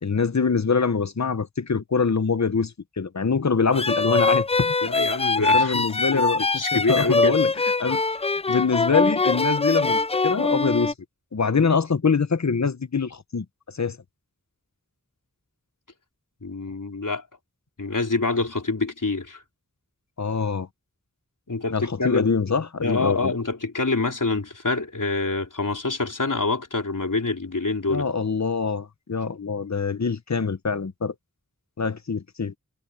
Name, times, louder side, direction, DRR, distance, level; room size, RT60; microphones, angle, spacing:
voice 1, 0.0-4.7 5.4-7.5 7.8-8.0 8.3-10.9 11.3-14.0 20.2-20.7 21.7-23.3 27.9-31.1 31.8-32.5, left 5 dB, 60° left, 1.0 m, -24 dB
sound 1, 3.7-10.9, left 3 dB, 20° left, 0.4 m, -23 dB
voice 2, 4.8-5.9 6.1-7.4 16.4-17.2 17.8-19.4 21.5-22.3 22.8-28.1, left 3 dB, 85° left, 3.9 m, -26 dB
wide cardioid pair, 45°, 31 cm